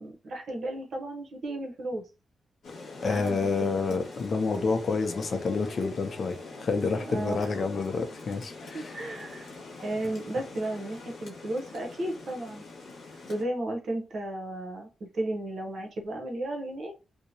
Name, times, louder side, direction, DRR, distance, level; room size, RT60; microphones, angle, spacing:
voice 1, 0.0-2.0 3.0-4.0 7.0-7.5 8.7-9.5 9.8-12.6 13.3-16.9, right 1 dB, 65° right, 0.8 m, -34 dB
Rain, 2.6-13.4, left 3 dB, 90° left, 1.0 m, -44 dB
voice 2, 3.0-8.9, left 4 dB, 55° left, 0.5 m, -29 dB
2.7 x 2.1 x 2.7 m
cardioid pair, 85°, 0 cm